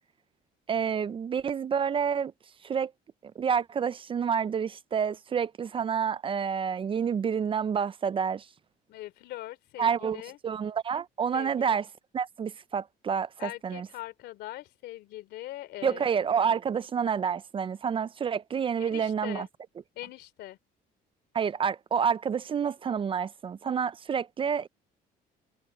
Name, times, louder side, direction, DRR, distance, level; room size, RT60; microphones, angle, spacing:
voice 1, 0.7-2.3 2.6-2.9 3.2-8.4 9.8-11.9 12.1-13.9 15.8-19.5 21.3-24.7, right 7 dB, 30° right, 0.4 m, -29 dB
voice 2, 8.9-10.4 11.3-11.8 13.4-16.2 18.8-19.5 19.9-20.6, left 15 dB, 80° left, 3.2 m, -41 dB
cardioid pair, 110°, 17 cm